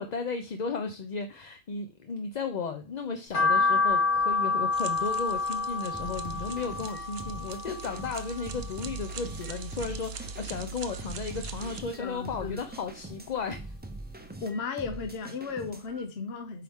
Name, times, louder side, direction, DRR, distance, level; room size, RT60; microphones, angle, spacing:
voice 1, 0.0-13.7, left 4 dB, 45° left, 0.7 m, -35 dB
sound 1, 3.3-9.6 10.0-11.2 11.5-12.9 13.3-13.4 13.9-14.0 14.2-14.3, left 4 dB, 85° left, 1.8 m, -29 dB
sound 2, 4.7-11.8, right 4 dB, 65° right, 0.9 m, -42 dB
sound 3, 5.9-16.0, right 2 dB, 10° right, 0.5 m, -44 dB
voice 2, 11.9-12.7 14.4-16.6, left 4 dB, 65° left, 1.1 m, -35 dB
8.4 x 4.6 x 3.6 m
omnidirectional pair, 1.2 m